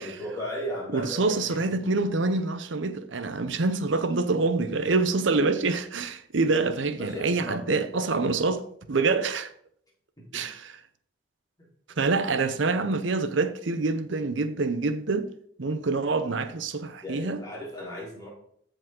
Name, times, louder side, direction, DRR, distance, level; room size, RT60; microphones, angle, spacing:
voice 1, 0.0-1.6 7.0-7.8 10.2-10.4 11.6-11.7 12.5-12.6 15.8-16.3 17.0-18.3, equal, 20° left, 3.9 m, -37 dB
voice 2, 0.9-8.6 8.9-9.5 10.3-10.7 12.0-15.3 15.6-17.4, right 3 dB, 75° right, 0.7 m, -26 dB
13.5 x 5.2 x 3.8 m
head